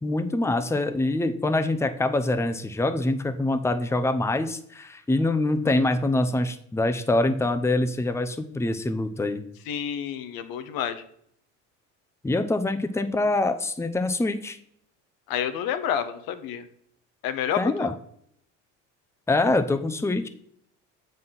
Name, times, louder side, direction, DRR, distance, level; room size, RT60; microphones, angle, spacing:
voice 1, 0.0-9.4 12.2-14.6 17.6-17.9 19.3-20.3, left 2 dB, 5° left, 8 dB, 0.7 m, -25 dB
voice 2, 9.7-11.0 15.3-16.6 17.2-17.9, left 9 dB, 65° left, 10 dB, 0.9 m, -29 dB
7.5 x 4.0 x 5.8 m, 0.68 s
hypercardioid pair, 70°, 38 cm